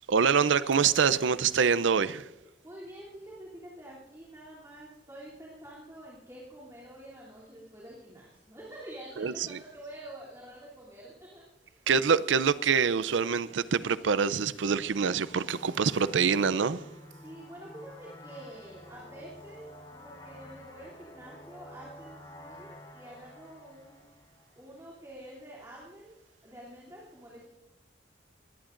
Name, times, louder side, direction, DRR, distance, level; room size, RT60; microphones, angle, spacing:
voice 1, 0.1-2.2 9.2-9.3 11.9-16.8, right 6 dB, 90° right, 0.5 m, -25 dB
voice 2, 2.6-11.9 17.2-24.0 24.5-26.2 26.4-27.5, right 1 dB, 15° right, 3.0 m, -48 dB
sound 1, 14.6-24.9, left 1 dB, 25° left, 1.1 m, -50 dB
21.5 x 17.5 x 2.6 m
head